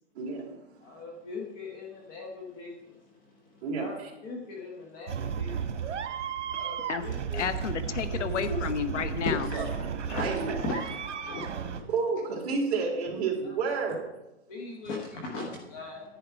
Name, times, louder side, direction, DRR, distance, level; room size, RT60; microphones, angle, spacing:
voice 1, 0.1-0.5 0.9-1.0 3.6-4.1 9.5-9.6 10.1-10.6 11.9-14.1, right 4 dB, 30° right, -2 dB, 2.8 m, -30 dB
voice 2, 0.8-3.2 3.5-7.4 8.0-8.6 9.2-9.7 10.1-10.3 10.6-11.8 13.4-13.6 14.5-16.2, left 3 dB, 20° left, 0 dB, 1.0 m, -39 dB
sound 1, 5.1-11.8, right 7 dB, 80° right, 1.4 m, -34 dB
voice 3, 7.3-9.5, left 7 dB, 80° left, 12 dB, 1.0 m, -31 dB
10.5 x 9.8 x 4.5 m, 0.96 s
hypercardioid pair, 170°, 36 cm